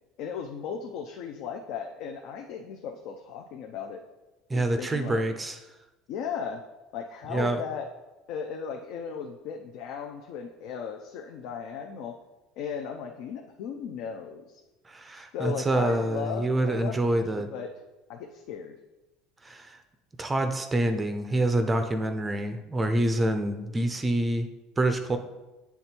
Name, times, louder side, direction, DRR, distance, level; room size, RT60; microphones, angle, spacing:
voice 1, 0.2-4.0 4.5-5.2 6.1-6.6 6.9-7.8 8.3-12.1 12.6-14.6 15.3-17.7 18.1-18.7, left 7 dB, 60° left, 3 dB, 0.5 m, -36 dB
voice 2, 4.5-5.6 7.3-7.6 14.9-17.5 19.4-19.8 20.2-24.5 24.8-25.2, right 1 dB, 15° right, 7 dB, 0.5 m, -26 dB
8.4 x 3.4 x 4.4 m, 1.1 s
cardioid pair, 145°, 0 cm